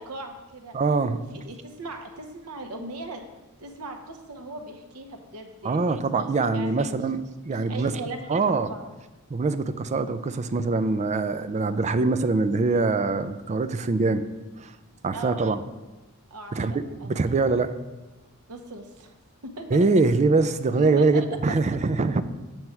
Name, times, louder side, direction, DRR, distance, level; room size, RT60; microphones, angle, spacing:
voice 1, 0.0-0.7 1.1-3.3 3.6-7.0 7.5-8.8 15.1-15.6 16.3-17.2 18.5-19.1 19.4-19.8 20.8-21.2, right 2 dB, 90° right, 5 dB, 1.0 m, -38 dB
voice 2, 0.7-1.2 5.6-8.0 8.3-8.7 9.3-14.3 14.6-14.7 15.0-15.6 16.5-17.7 19.7-22.2, right 3 dB, 30° right, 11 dB, 0.4 m, -23 dB
7.9 x 4.6 x 5.6 m, 1.1 s
head